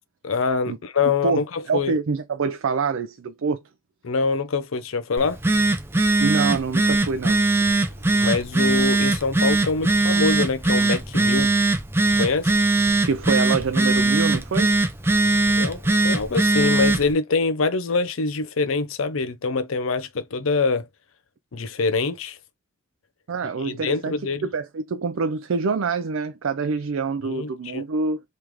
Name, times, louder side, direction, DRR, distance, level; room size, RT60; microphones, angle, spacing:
voice 1, 0.2-1.9 4.0-5.4 8.1-11.5 12.2-12.6 15.6-20.9 21.5-22.4 23.6-24.5 27.2-27.8, left 4 dB, 85° left, 0.6 m, -24 dB
voice 2, 1.2-3.6 6.2-7.4 8.0-8.1 13.0-14.7 23.3-24.1 24.4-28.2, right 4 dB, 80° right, 0.4 m, -26 dB
Telephone, 5.2-17.1, right 2 dB, 10° right, 0.5 m, -21 dB
3.3 x 3.1 x 3.5 m
head